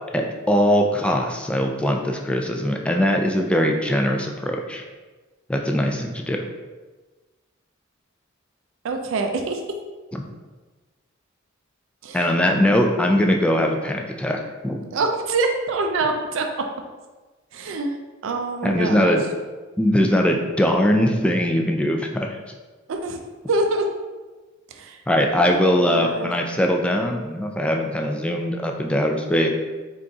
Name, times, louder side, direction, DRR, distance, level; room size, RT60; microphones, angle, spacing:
voice 1, 0.1-4.8 5.5-6.4 10.1-10.2 12.1-14.8 18.6-19.2 19.8-22.4 25.1-29.5, equal, 5° left, 2 dB, 0.3 m, -21 dB
voice 2, 8.8-9.6 12.0-12.2 14.9-16.5 17.5-17.9 18.2-19.2 22.9-23.2 23.5-23.8 24.7-25.0 25.4-26.3, right 3 dB, 70° right, 4 dB, 0.4 m, -25 dB
3.9 x 3.8 x 2.3 m, 1.3 s
head